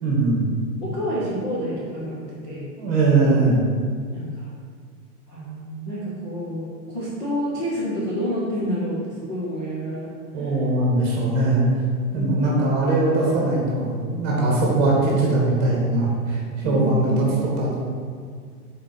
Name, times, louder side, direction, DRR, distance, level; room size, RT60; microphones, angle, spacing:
voice 1, 0.0-0.4 2.8-3.6 10.3-11.6 12.1-17.7, right 2 dB, 20° right, -4 dB, 1.6 m, -21 dB
voice 2, 0.8-2.7 4.1-4.5 5.3-10.1 10.4-10.5 12.1-12.3 16.6-17.1, equal, 20° left, -9 dB, 0.5 m, -29 dB
5.0 x 4.4 x 6.1 m, 2.1 s
supercardioid pair, 175°, 46 cm